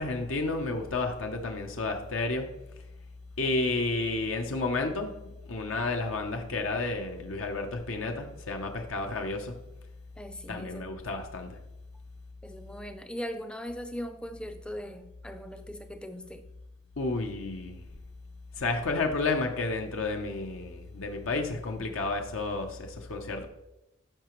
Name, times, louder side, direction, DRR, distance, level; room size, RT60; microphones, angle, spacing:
voice 1, 0.0-2.5 3.4-9.6 10.5-11.6 17.0-17.8 18.6-23.5, left 3 dB, 70° left, 0.8 m, -31 dB
voice 2, 10.2-11.2 12.4-16.5, equal, 5° left, 0.5 m, -40 dB
13.5 x 5.7 x 3.1 m
head